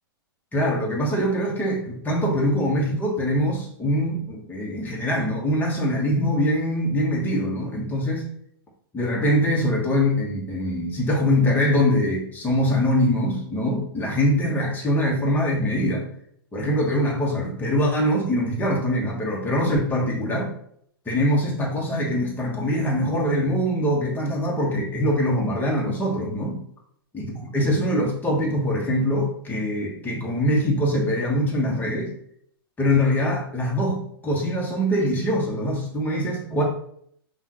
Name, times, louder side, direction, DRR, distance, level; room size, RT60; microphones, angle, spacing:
voice 1, 0.5-8.3 8.9-16.1 16.5-20.5 21.1-26.6 27.1-27.3 27.5-32.1 32.8-36.6, equal, 15° left, -2 dB, 1.2 m, -23 dB
5.4 x 2.5 x 3.0 m, 0.67 s
hypercardioid pair, 110°, 13 cm